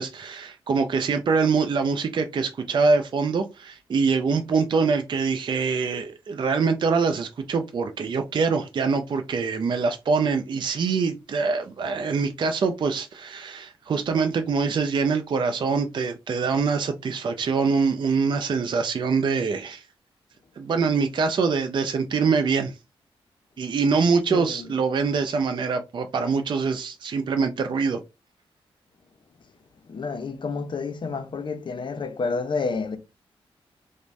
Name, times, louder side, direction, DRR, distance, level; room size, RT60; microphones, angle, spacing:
voice 1, 0.0-19.8 20.6-22.8 23.6-28.0, right 5 dB, 50° right, 0.4 m, -24 dB
voice 2, 24.3-24.7 29.9-33.0, left 4 dB, 50° left, 0.6 m, -29 dB
3.1 x 2.1 x 2.5 m
cardioid pair, 75°, 10 cm